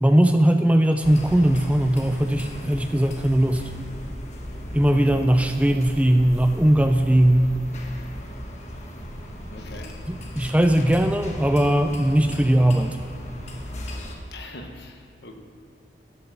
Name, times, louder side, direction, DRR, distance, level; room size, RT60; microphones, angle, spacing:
voice 1, 0.0-3.7 4.7-7.6 10.4-13.0, right 1 dB, 10° right, 7 dB, 0.4 m, -19 dB
sound 1, 1.0-14.2, equal, 40° left, 1.2 m, -36 dB
voice 2, 4.9-5.2 9.5-9.9 10.4-10.5 14.3-15.4, left 2 dB, 70° left, 3 dB, 1.1 m, -42 dB
12.0 x 5.8 x 6.4 m, 2.5 s
head